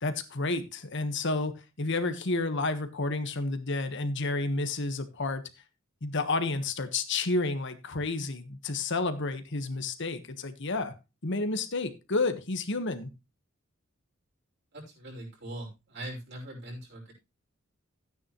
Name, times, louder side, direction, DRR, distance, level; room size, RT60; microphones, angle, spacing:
voice 1, 0.0-5.4 6.0-10.9 11.2-13.1, left 3 dB, 60° left, 1.3 m, -30 dB
voice 2, 14.7-17.1, right 1 dB, 55° right, 5.8 m, -41 dB
13.5 x 9.6 x 3.1 m
head